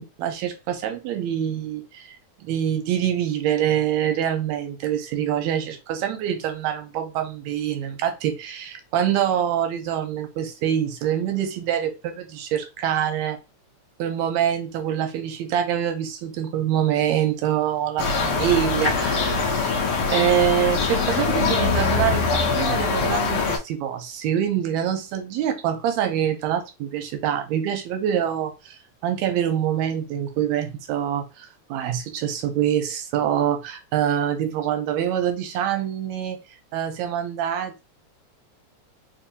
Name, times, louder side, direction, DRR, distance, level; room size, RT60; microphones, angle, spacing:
voice 1, 0.0-2.1 2.4-13.4 14.0-19.7 20.1-36.4 36.7-37.8, right 10 dB, 80° right, 1.9 m, -25 dB
sound 1, 18.0-23.6, left 4 dB, 70° left, 1.3 m, -23 dB
4.5 x 2.6 x 2.6 m
omnidirectional pair, 3.3 m